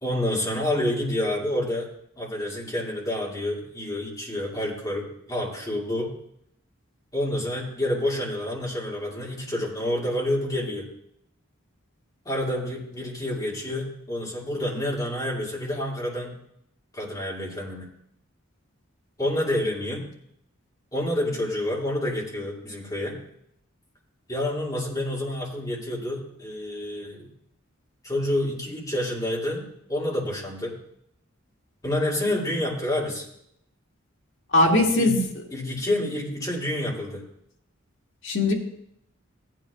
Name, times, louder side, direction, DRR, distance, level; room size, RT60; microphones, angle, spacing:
voice 1, 0.0-1.9 2.2-6.1 7.1-10.9 12.3-16.3 16.9-17.9 19.2-20.1 20.9-23.2 24.3-27.3 28.0-29.6 29.9-30.7 31.8-33.2 34.6-35.2 35.5-37.2, left 1 dB, 15° left, -4 dB, 2.3 m, -28 dB
voice 2, 34.5-35.2 38.2-38.5, left 2 dB, 65° left, -1 dB, 1.8 m, -19 dB
15.5 x 9.2 x 2.4 m, 0.72 s
head